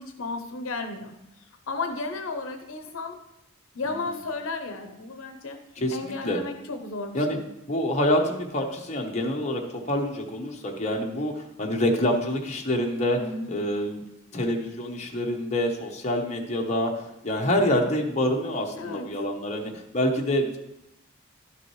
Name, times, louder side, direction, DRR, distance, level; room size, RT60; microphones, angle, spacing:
voice 1, 0.0-3.2 3.7-5.6 5.9-7.4 13.2-13.6 18.7-19.1, left 3 dB, 75° left, 6 dB, 0.7 m, -34 dB
voice 2, 5.8-6.4 7.1-7.4 7.7-13.2 13.5-14.0 14.3-20.6, left 1 dB, 30° left, 0 dB, 1.0 m, -26 dB
12.0 x 6.0 x 3.1 m, 0.87 s
head